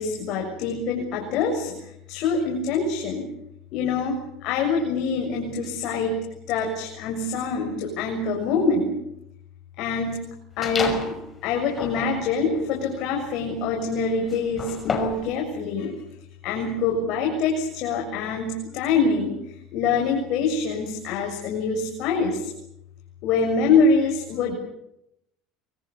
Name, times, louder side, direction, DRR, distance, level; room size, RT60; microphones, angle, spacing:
voice 1, 0.0-3.3 3.7-8.9 9.8-10.2 10.6-11.2 11.4-15.9 16.4-22.5 23.2-24.5, left 4 dB, 50° left, 1 dB, 7.0 m, -25 dB
sound 1, 10.6-11.2 11.7-15.3, left 4 dB, 20° left, 5.8 m, -32 dB
25.0 x 25.0 x 7.1 m, 0.81 s
cardioid pair, 150°, 0 cm